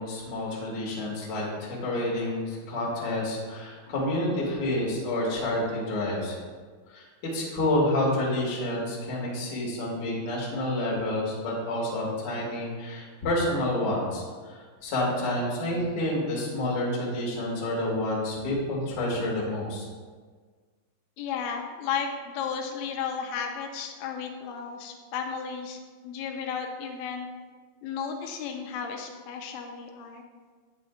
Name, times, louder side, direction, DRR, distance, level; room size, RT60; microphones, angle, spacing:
voice 1, 0.0-6.4 6.9-7.0 7.3-19.9, left 1 dB, 40° left, -5 dB, 1.5 m, -29 dB
voice 2, 21.2-25.8 26.0-27.3 27.8-30.2, left 6 dB, 90° left, 3 dB, 2.9 m, -34 dB
10.5 x 8.4 x 2.4 m, 1.5 s
omnidirectional pair, 5.2 m